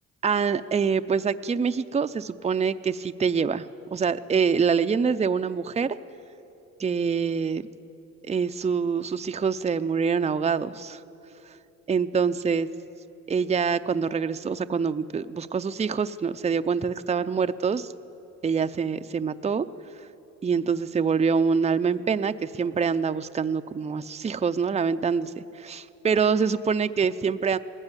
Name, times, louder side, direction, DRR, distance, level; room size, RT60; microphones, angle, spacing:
voice 1, 0.2-3.7 3.9-6.0 6.8-7.7 8.2-11.0 11.9-12.7 13.3-17.9 18.4-19.7 20.4-25.3 25.6-27.6, right 6 dB, 20° right, 10 dB, 0.6 m, -25 dB
20.0 x 15.5 x 9.9 m, 3.0 s
cardioid pair, 90°, 30 cm